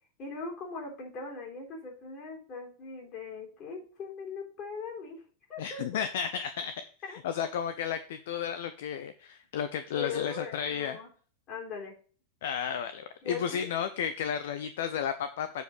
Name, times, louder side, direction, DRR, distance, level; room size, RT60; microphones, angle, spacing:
voice 1, 0.2-5.2 5.5-6.0 7.0-7.2 9.9-11.1 11.5-11.9 13.2-13.7, left 4 dB, 35° left, -1 dB, 3.5 m, -40 dB
voice 2, 5.6-11.0 12.4-15.6, left 8 dB, 55° left, 11 dB, 0.6 m, -33 dB
8.0 x 4.9 x 5.3 m, 0.42 s
figure-of-eight pair, 90°, 0 cm